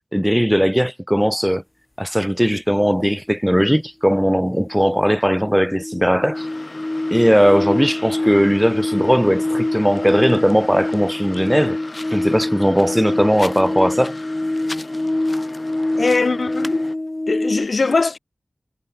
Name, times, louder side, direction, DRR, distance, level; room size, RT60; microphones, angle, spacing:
voice 1, 0.1-1.6 2.0-6.5 7.1-11.8 12.1-14.2, equal, ahead, 0.4 m, -18 dB
sound 1, 4.1-4.2 4.5-17.7, left 1 dB, 30° left, 1.6 m, -25 dB
sound 2, 6.3-17.0, left 2 dB, 50° left, 2.6 m, -38 dB
voice 2, 15.9-16.8 17.3-18.2, left 3 dB, 70° left, 1.5 m, -20 dB
cardioid pair, 45°, 0 cm